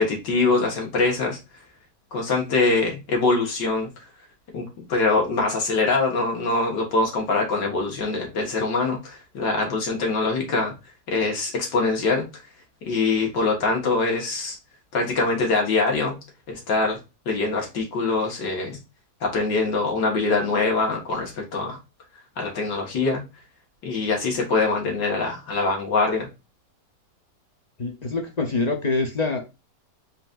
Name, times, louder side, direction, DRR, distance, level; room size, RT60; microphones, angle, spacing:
voice 1, 0.0-1.4 2.1-3.9 4.5-10.7 11.1-12.3 12.9-14.6 14.9-16.2 16.5-17.0 17.3-18.8 19.2-21.8 22.4-23.2 23.8-26.3, left 3 dB, 85° left, 2.1 m, -23 dB
voice 2, 27.8-29.5, left 3 dB, 50° left, 0.4 m, -25 dB
4.1 x 4.0 x 2.4 m
omnidirectional pair, 1.9 m